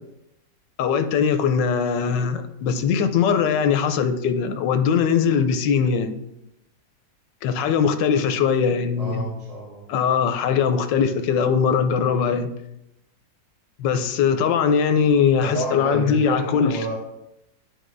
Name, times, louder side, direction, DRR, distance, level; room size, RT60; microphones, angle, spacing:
voice 1, 0.8-6.2 7.4-9.2 9.9-12.5 13.8-16.9, left 6 dB, 80° left, 8 dB, 1.3 m, -21 dB
voice 2, 9.0-9.8 15.4-16.9, right 2 dB, 80° right, -7 dB, 3.1 m, -30 dB
11.0 x 4.7 x 2.6 m, 0.85 s
omnidirectional pair, 1.9 m